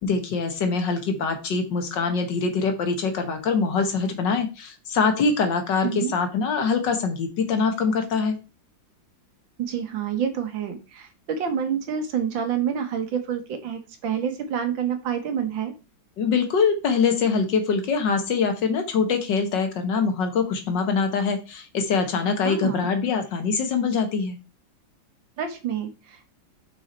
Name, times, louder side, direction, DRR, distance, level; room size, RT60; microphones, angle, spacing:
voice 1, 0.0-8.4 16.2-24.4, left 5 dB, 65° left, 6 dB, 1.9 m, -24 dB
voice 2, 9.6-15.7 22.4-22.9 25.4-26.3, right 8 dB, 75° right, 7 dB, 1.9 m, -28 dB
6.1 x 5.6 x 4.3 m, 0.30 s
omnidirectional pair, 2.1 m